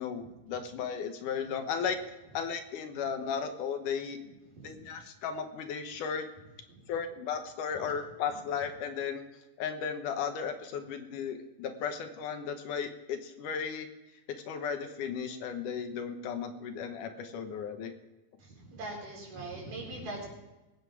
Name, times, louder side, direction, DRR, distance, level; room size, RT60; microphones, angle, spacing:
voice 1, 0.0-2.0 2.3-4.2 4.6-6.3 6.9-9.2 9.6-13.9 14.5-17.9, left 7 dB, 75° left, 7 dB, 2.6 m, -35 dB
voice 2, 18.7-20.3, right 2 dB, 75° right, -2 dB, 5.9 m, -41 dB
21.5 x 9.3 x 4.8 m, 1.0 s
omnidirectional pair, 3.8 m